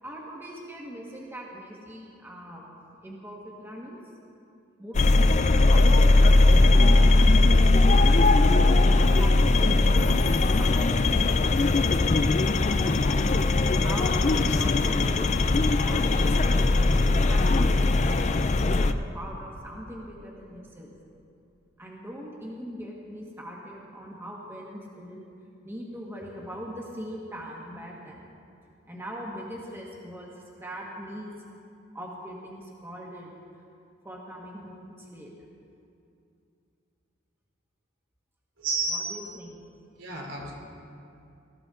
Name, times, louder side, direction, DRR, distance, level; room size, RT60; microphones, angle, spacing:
voice 1, 0.0-2.7 3.0-4.0 4.8-8.2 9.0-10.2 10.6-11.5 12.4-13.2 13.8-17.4 18.0-20.9 21.8-25.3 25.6-28.3 28.9-31.3 31.9-33.3 34.0-35.3 38.9-39.5, equal, 10° right, -3 dB, 1.6 m, -41 dB
sound 1, 4.9-18.9, left 2 dB, 35° left, 0.4 m, -20 dB
voice 2, 38.6-39.2 40.0-40.5, right 3 dB, 75° right, -2 dB, 3.3 m, -31 dB
19.5 x 14.0 x 3.8 m, 2.6 s
head